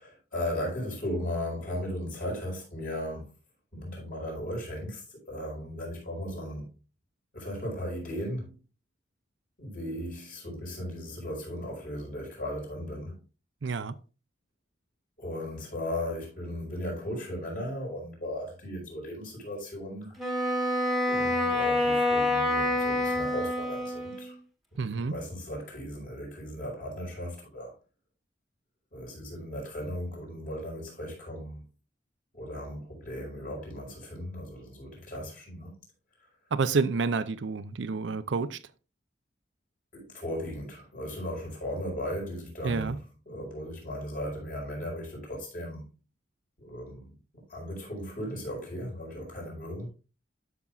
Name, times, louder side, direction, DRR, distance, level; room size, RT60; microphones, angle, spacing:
voice 1, 0.0-3.3 3.7-6.7 7.3-8.6 9.6-13.2 15.2-20.2 21.1-24.4 24.7-27.7 28.9-31.6 32.3-35.7 36.2-36.3 39.9-45.8 46.6-49.9, left 1 dB, 50° left, 4.8 m, -37 dB
voice 2, 13.6-13.9 24.8-25.1 36.5-38.6 42.6-42.9, right 4 dB, 75° right, 0.5 m, -29 dB
Wind instrument woodwind instrument, 20.2-24.3, left 1 dB, ahead, 1.3 m, -27 dB
12.5 x 6.0 x 2.4 m
head